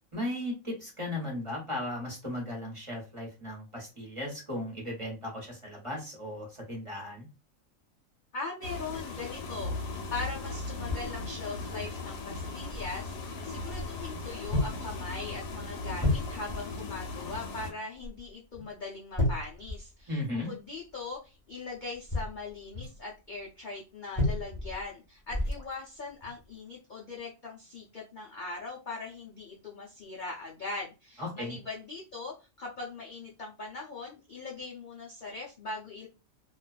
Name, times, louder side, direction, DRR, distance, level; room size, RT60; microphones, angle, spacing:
voice 1, 0.1-7.3 20.1-20.5 31.2-31.6, left 1 dB, 25° right, -3 dB, 0.9 m, -36 dB
voice 2, 8.3-36.1, left 3 dB, 55° left, -3 dB, 0.5 m, -40 dB
sound 1, 8.6-17.7, left 3 dB, 85° left, 1.0 m, -38 dB
sound 2, 10.8-11.2 11.8-11.9 12.7-12.9 13.7-14.2 14.5-14.9 15.3-15.5 16.0-16.7 17.9-18.3 18.5-18.7 19.1-20.3 21.9-23.0 24.1-24.8 25.3-25.7 26.2-26.4, left 2 dB, 20° left, 1.0 m, -32 dB
2.4 x 2.3 x 2.3 m, 0.29 s
omnidirectional pair, 1.4 m